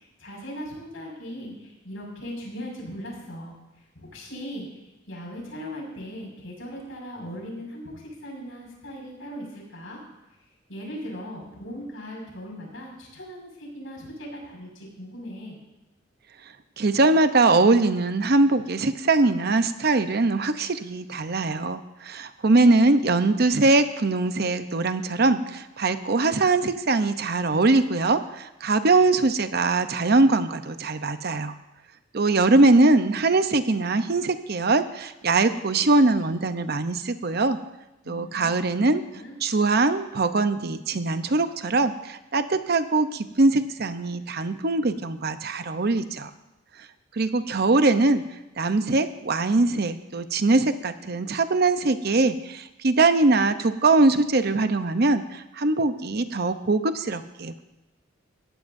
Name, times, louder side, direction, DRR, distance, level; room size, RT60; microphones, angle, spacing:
voice 1, 0.0-3.6 3.9-4.7 5.1-10.0 10.7-15.6 22.7-23.2 38.0-38.6 39.1-39.4, equal, 75° left, -1 dB, 5.8 m, -39 dB
voice 2, 16.8-31.5 32.1-37.6 38.1-39.0 39.4-46.3 47.1-48.2 48.6-57.6, right 3 dB, 55° right, 10 dB, 0.8 m, -22 dB
19.5 x 15.0 x 2.7 m, 0.99 s
head